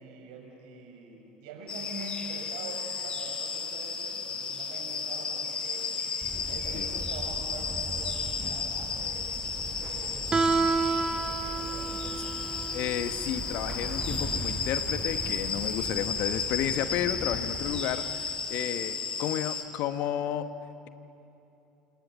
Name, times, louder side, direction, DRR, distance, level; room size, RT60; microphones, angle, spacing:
voice 1, 0.0-4.1 4.5-5.8 6.4-8.2 8.5-10.4 10.8-12.3, right 3 dB, 70° right, 1 dB, 6.2 m, -45 dB
sound 1, 1.7-19.6, left 5 dB, 35° left, 4.3 m, -34 dB
sound 2, 6.2-17.8, right 1 dB, 10° right, 4.6 m, -40 dB
Guitar, 10.3-16.0, right 4 dB, 25° right, 1.8 m, -30 dB
voice 2, 12.7-20.5, left 11 dB, 60° left, 11 dB, 1.1 m, -32 dB
27.5 x 27.0 x 7.0 m, 2.9 s
hypercardioid pair, 70°, 3 cm